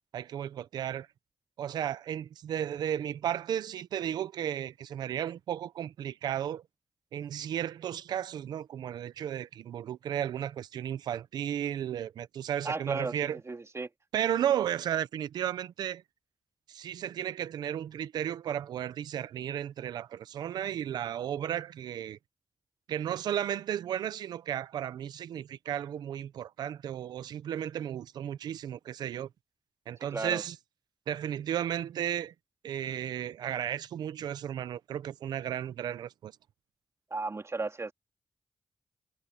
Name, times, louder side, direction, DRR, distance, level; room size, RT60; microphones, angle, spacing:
voice 1, 0.1-1.1 1.6-6.6 7.1-13.4 14.1-16.0 16.7-22.2 22.9-29.3 29.9-30.6 31.1-32.3 32.6-36.3, right 10 dB, 90° right, 0.8 m, -34 dB
voice 2, 12.6-13.9 30.1-30.4 37.1-37.9, right 3 dB, 45° right, 3.0 m, -35 dB
supercardioid pair, 40°, 7 cm